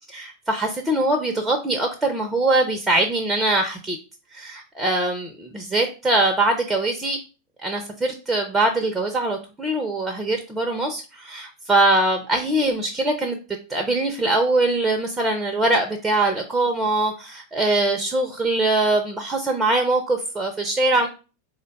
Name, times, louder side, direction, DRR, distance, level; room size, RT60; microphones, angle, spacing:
voice 1, 0.1-4.0 4.3-7.2 7.6-13.4 13.7-21.1, right 2 dB, 10° right, 4 dB, 0.6 m, -22 dB
3.9 x 2.2 x 3.9 m, 0.32 s
figure-of-eight pair, 90°, 0 cm